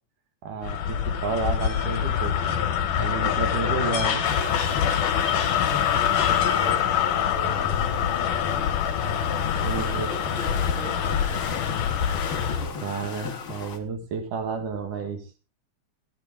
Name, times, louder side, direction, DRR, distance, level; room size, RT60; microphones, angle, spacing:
voice 1, 0.4-1.0 1.2-2.4 3.0-4.2 9.6-10.1 12.8-15.3, right 5 dB, 85° right, 5 dB, 3.3 m, -31 dB
sound 1, 0.6-12.7, left 8 dB, 80° left, 2.8 m, -25 dB
voice 2, 3.5-4.7 5.7-8.9 9.4-11.3, right 2 dB, 40° right, -3 dB, 7.6 m, -40 dB
sound 2, 4.2-13.8, left 5 dB, 50° left, 2.1 m, -37 dB
16.5 x 10.0 x 3.6 m, 0.31 s
omnidirectional pair, 3.6 m